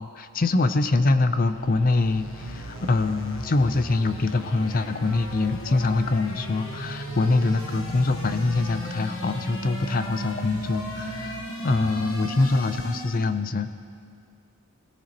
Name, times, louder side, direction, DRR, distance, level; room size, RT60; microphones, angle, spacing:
voice 1, 0.0-11.4 11.6-13.7, left 3 dB, 40° left, 10 dB, 0.5 m, -24 dB
sound 1, 1.3-13.4, equal, 60° left, 1.3 m, -37 dB
sound 2, 2.4-3.5 4.0-6.4 6.7-13.0, right 4 dB, 70° right, 0.5 m, -42 dB
22.5 x 17.0 x 3.0 m, 2.4 s
head